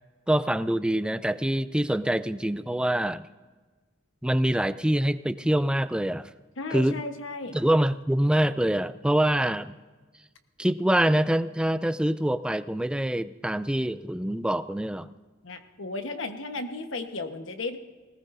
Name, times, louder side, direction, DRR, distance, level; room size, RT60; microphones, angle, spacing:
voice 1, 0.3-3.3 4.2-6.3 6.7-7.0 7.5-9.8 10.6-15.2, right 1 dB, 5° right, 14 dB, 0.3 m, -25 dB
voice 2, 6.6-7.6 15.4-17.8, left 3 dB, 80° left, 7 dB, 1.2 m, -34 dB
20.0 x 18.5 x 2.7 m, 1.4 s
head